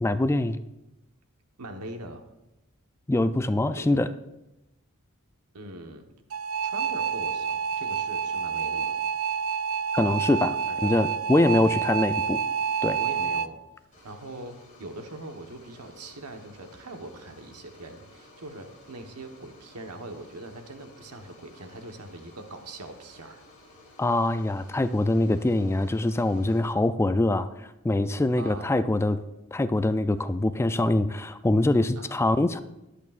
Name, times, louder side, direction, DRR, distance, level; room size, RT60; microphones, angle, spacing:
voice 1, 0.0-0.6 3.1-4.1 9.9-10.6 10.8-12.4 12.8-13.0 24.0-27.5 27.8-29.2 29.5-32.6, left 2 dB, 10° left, 12 dB, 0.3 m, -24 dB
voice 2, 1.6-2.2 3.7-4.0 5.5-6.1 6.6-9.0 10.7-10.9 11.5-11.9 13.0-13.6 14.0-23.4 28.4-28.7 32.0-32.1, right 2 dB, 90° right, 5 dB, 1.2 m, -42 dB
sound 1, 6.3-13.5, right 7 dB, 65° right, 0.5 m, -28 dB
sound 2, 13.9-26.6, left 1 dB, 35° left, 3.9 m, -54 dB
21.5 x 8.4 x 2.5 m, 0.94 s
head